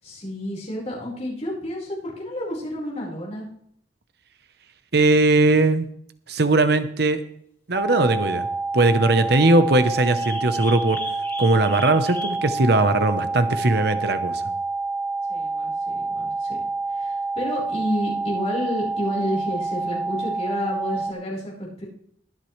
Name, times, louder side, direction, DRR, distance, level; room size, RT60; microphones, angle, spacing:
voice 1, 0.0-3.5 15.3-16.6 16.9-21.8, equal, 35° left, -4 dB, 5.0 m, -30 dB
voice 2, 4.9-5.9 6.3-7.2 7.7-8.5 8.7-11.0 11.4-14.5, right 2 dB, 60° right, 10 dB, 1.0 m, -19 dB
sound 1, 7.7-21.1, right 3 dB, 10° right, 0.8 m, -28 dB
sound 2, 10.2-12.5 13.0-13.1, left 1 dB, 15° left, 2.1 m, -37 dB
22.0 x 7.5 x 3.4 m, 0.67 s
head